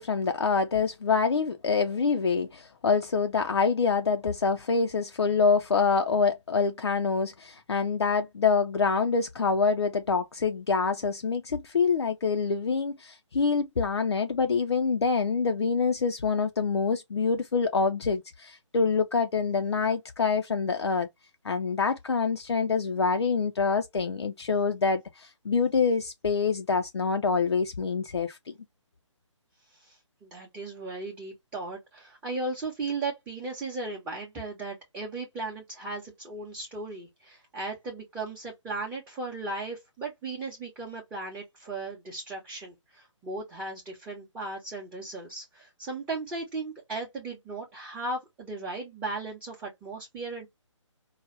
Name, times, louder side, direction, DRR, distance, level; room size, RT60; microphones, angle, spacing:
voice 1, 0.0-21.1 21.4-28.5, left 5 dB, 55° left, 0.5 m, -26 dB
voice 2, 29.7-50.5, right 3 dB, 10° right, 0.8 m, -36 dB
4.7 x 2.3 x 3.2 m
figure-of-eight pair, 140°, 16 cm